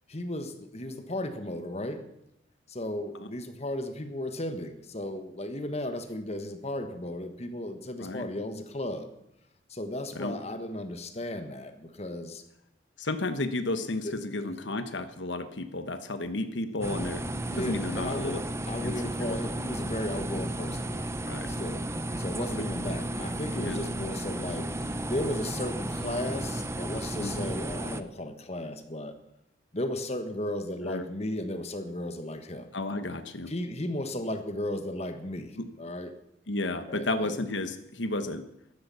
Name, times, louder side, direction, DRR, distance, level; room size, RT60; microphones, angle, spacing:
voice 1, 0.1-2.0 2.7-9.1 9.7-12.4 14.0-14.5 17.2-18.4 18.7-21.1 21.5-21.9 22.2-29.1 29.7-32.7 33.5-36.1 36.9-37.5, left 1 dB, 35° left, 8 dB, 1.4 m, -35 dB
voice 2, 13.0-17.2 17.6-18.4 18.8-19.0 19.2-19.4 21.3-21.5 22.6-22.7 23.6-23.9 27.2-27.5 30.8-31.0 32.7-33.5 35.6-35.7 36.5-38.4, left 2 dB, 80° left, 10 dB, 1.2 m, -32 dB
sound 1, 16.8-28.0, right 1 dB, 15° right, 0.7 m, -34 dB
14.0 x 12.5 x 7.0 m, 0.81 s
head